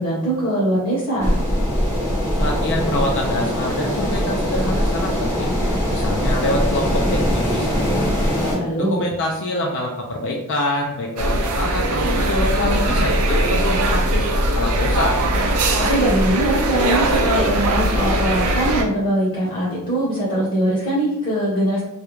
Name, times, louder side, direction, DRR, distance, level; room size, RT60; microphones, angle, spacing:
voice 1, 0.0-1.3 8.5-9.0 15.9-21.8, right 1 dB, 40° left, -7 dB, 0.8 m, -21 dB
sound 1, 1.2-8.6, equal, 10° left, 0.6 m, -21 dB
voice 2, 2.4-5.6 5.9-8.2 8.9-15.2, left 1 dB, 55° left, 0 dB, 0.4 m, -25 dB
sound 2, 11.2-18.8, right 1 dB, 75° right, 0.4 m, -20 dB
2.4 x 2.1 x 2.9 m, 0.86 s
head